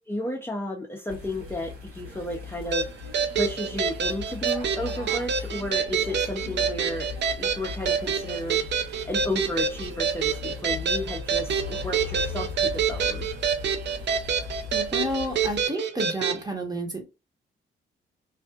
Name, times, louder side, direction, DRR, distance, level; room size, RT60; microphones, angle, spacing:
voice 1, 0.1-7.1 7.4-13.3, left 1 dB, 10° left, -1 dB, 0.7 m, -33 dB
sound 1, 1.1-15.7, left 5 dB, 85° right, 1.1 m, -38 dB
sound 2, 2.7-16.4, right 6 dB, 55° right, 0.5 m, -27 dB
voice 2, 14.7-17.0, equal, 20° right, 2 dB, 1.1 m, -31 dB
2.6 x 2.4 x 2.3 m, 0.27 s
cardioid pair, 75°, 21 cm